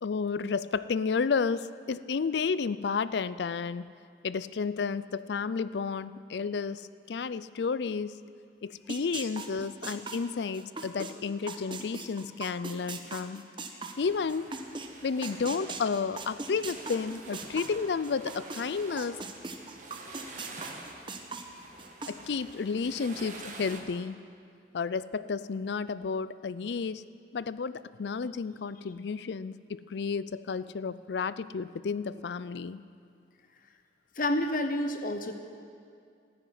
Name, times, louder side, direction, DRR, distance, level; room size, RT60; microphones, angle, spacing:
voice 1, 0.0-3.9 4.2-8.2 8.6-13.4 14.0-14.5 15.0-19.2 22.1-24.2 24.7-27.0 27.3-32.8, left 5 dB, 75° left, 16 dB, 0.4 m, -32 dB
sound 1, 8.9-14.9 15.2-18.6 19.0-22.1, right 4 dB, 30° right, 1.0 m, -39 dB
sound 2, 13.9-23.8, right 3 dB, 45° right, 1.6 m, -48 dB
voice 2, 34.2-35.3, left 1 dB, 50° left, 7 dB, 0.8 m, -29 dB
13.0 x 10.5 x 9.3 m, 2.3 s
head